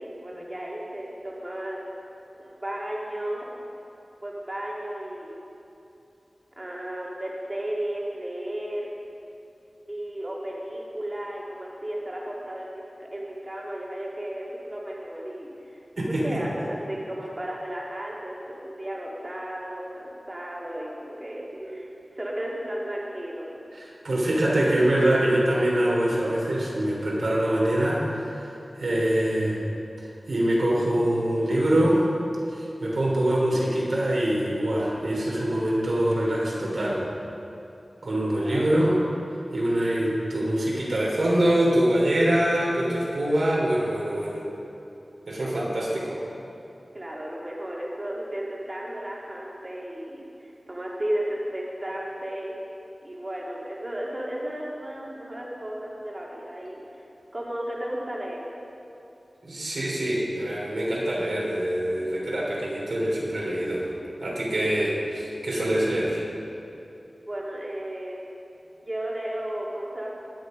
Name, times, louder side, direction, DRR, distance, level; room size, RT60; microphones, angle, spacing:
voice 1, 0.0-1.8 2.4-3.6 4.2-5.4 6.6-8.9 9.9-15.8 16.1-21.9 22.1-23.6 38.4-38.8 46.9-52.6 53.0-57.1 57.3-58.5 67.2-68.3 68.8-70.2, right 1 dB, 30° right, -4 dB, 2.6 m, -34 dB
voice 2, 16.0-16.4 21.6-21.9 23.7-28.3 28.8-29.7 30.3-32.1 32.5-37.0 38.0-39.0 39.5-44.4 45.3-46.2 59.4-63.9 64.2-66.2, right 1 dB, 80° right, -5 dB, 3.6 m, -24 dB
21.0 x 7.0 x 5.2 m, 2.9 s
wide cardioid pair, 75°, 0 cm